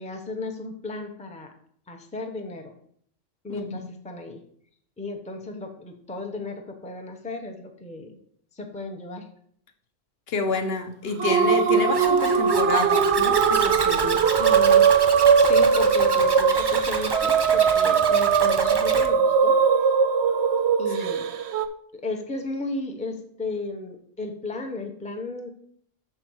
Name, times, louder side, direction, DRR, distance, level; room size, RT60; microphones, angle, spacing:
voice 1, 0.0-1.5 1.9-2.7 3.4-4.4 5.0-8.2 8.5-9.3 14.1-14.9 15.3-19.6 20.8-21.3 21.9-25.5, left 3 dB, 5° left, 0.7 m, -34 dB
voice 2, 3.5-3.8 10.3-14.3, left 4 dB, 55° left, 1.0 m, -28 dB
sound 1, 11.2-21.7, right 6 dB, 65° right, 0.8 m, -20 dB
Zipper (clothing), 11.9-19.1, right 3 dB, 30° right, 0.5 m, -31 dB
6.7 x 4.3 x 6.2 m
omnidirectional pair, 1.3 m